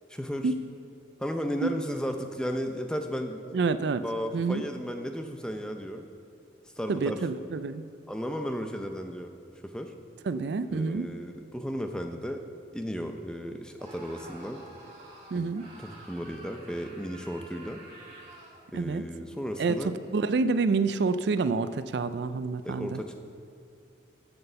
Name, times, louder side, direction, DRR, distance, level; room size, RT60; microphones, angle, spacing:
voice 1, 0.1-0.5 1.2-3.4 4.0-6.1 6.8-7.2 8.1-9.3 9.6-9.9 10.7-12.4 12.7-14.6 15.3-15.5 15.8-17.8 18.7-20.0 22.6-23.1, equal, 5° left, 5 dB, 0.5 m, -34 dB
voice 2, 3.5-4.0 4.3-4.6 6.9-7.9 10.3-11.1 15.3-15.6 18.7-19.0 19.6-19.8 20.1-23.0, right 4 dB, 65° right, 12 dB, 0.4 m, -28 dB
Screaming, 13.8-18.6, right 2 dB, 35° right, 1.8 m, -49 dB
8.0 x 7.6 x 6.8 m, 2.6 s
head